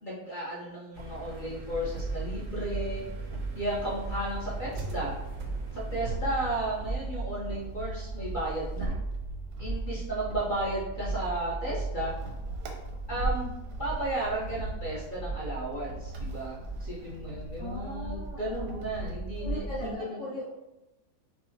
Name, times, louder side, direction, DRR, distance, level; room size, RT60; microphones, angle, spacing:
voice 1, 0.0-3.0 3.5-5.2 5.7-9.0 9.6-12.1 13.1-20.2, right 1 dB, 45° left, -6 dB, 0.7 m, -34 dB
sound 1, 0.9-7.4, right 2 dB, 65° right, 0.6 m, -44 dB
sound 2, 1.7-19.9, right 3 dB, 90° right, 1.2 m, -36 dB
voice 2, 17.6-18.8 19.4-20.5, left 1 dB, 75° left, -10 dB, 1.9 m, -39 dB
5.6 x 2.1 x 2.7 m, 0.96 s
omnidirectional pair, 1.7 m